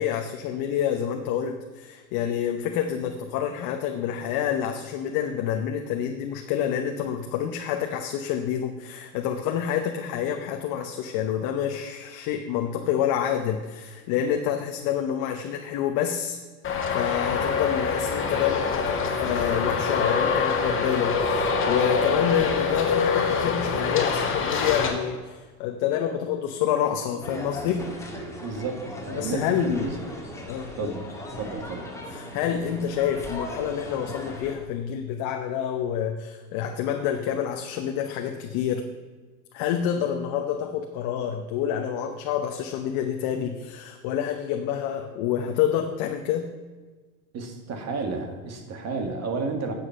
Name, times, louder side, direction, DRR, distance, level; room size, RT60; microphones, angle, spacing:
voice 1, 0.0-16.4 16.9-27.9 29.1-29.9 30.5-30.9 32.1-38.9 39.5-46.5, left 9 dB, 50° left, 4 dB, 1.0 m, -28 dB
Traffic noise roadway noise, 16.6-24.9, left 5 dB, 30° left, 1.9 m, -25 dB
sound 1, 27.2-34.5, left 1 dB, 5° left, 1.9 m, -38 dB
voice 2, 28.4-30.0 30.8-31.1 31.4-31.9 47.3-49.7, right 4 dB, 35° right, 5 dB, 1.9 m, -31 dB
9.9 x 7.5 x 5.7 m, 1.4 s
hypercardioid pair, 110°, 44 cm